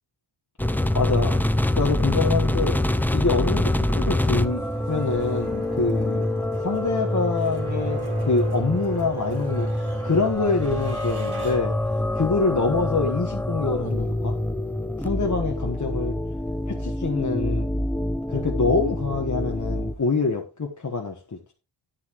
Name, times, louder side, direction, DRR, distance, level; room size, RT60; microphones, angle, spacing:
sound 1, 0.6-20.0, left 1 dB, 5° left, 0.5 m, -26 dB
voice 1, 0.9-1.4 1.7-2.8 3.1-6.3 6.6-11.7 12.1-14.4 15.0-16.1 16.7-17.7 18.3-21.2, left 4 dB, 35° left, 1.4 m, -25 dB
sound 2, 3.5-20.4, right 2 dB, 50° right, 3.7 m, -43 dB
9.9 x 9.8 x 3.0 m
wide cardioid pair, 100°, 48 cm